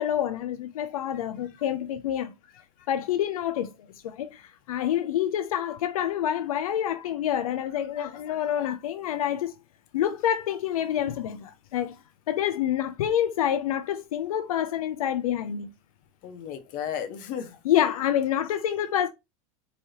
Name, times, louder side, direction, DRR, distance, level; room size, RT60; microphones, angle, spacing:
voice 1, 0.0-2.3 2.9-3.7 4.0-9.5 9.9-12.0 12.3-15.7 17.6-19.1, left 10 dB, 90° left, 0.5 m, -27 dB
voice 2, 8.0-8.7 16.2-17.6, left 8 dB, 50° left, 1.1 m, -36 dB
4.7 x 3.0 x 2.8 m
hypercardioid pair, 110°, 18 cm